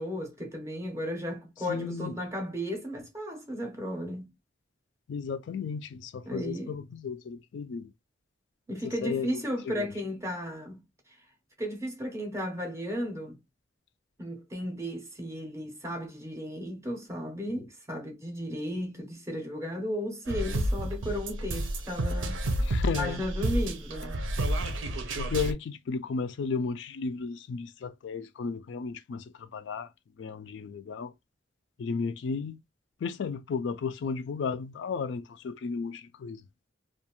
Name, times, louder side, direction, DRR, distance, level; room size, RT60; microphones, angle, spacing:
voice 1, 0.0-4.3 6.2-6.7 8.7-10.8 11.6-13.4 14.2-22.4 22.9-24.2, equal, 15° right, 0.6 m, -35 dB
voice 2, 1.7-2.2 5.1-7.9 8.8-9.9 22.6-23.2 25.2-29.9 30.2-31.1 31.8-32.6 33.0-36.4, left 5 dB, 70° left, 0.3 m, -34 dB
sound 1, 20.3-25.5, right 1 dB, 85° right, 0.6 m, -30 dB
2.4 x 2.2 x 2.8 m
head